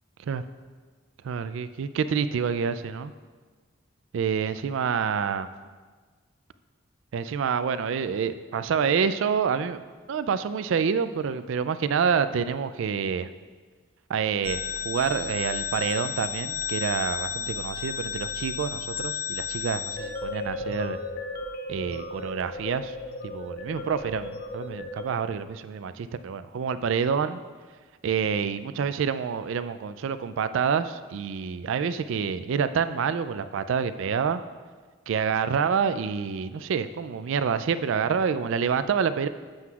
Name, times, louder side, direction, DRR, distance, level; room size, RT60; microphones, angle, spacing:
voice 1, 1.2-3.1 4.1-5.5 7.1-9.8 10.1-13.3 14.1-21.0 21.7-22.9 23.2-27.4 28.0-34.4 35.1-39.3, right 6 dB, 65° right, 12 dB, 0.3 m, -27 dB
sound 1, 14.4-25.1, left 5 dB, 45° left, 0.6 m, -34 dB
11.5 x 7.8 x 2.4 m, 1.4 s
head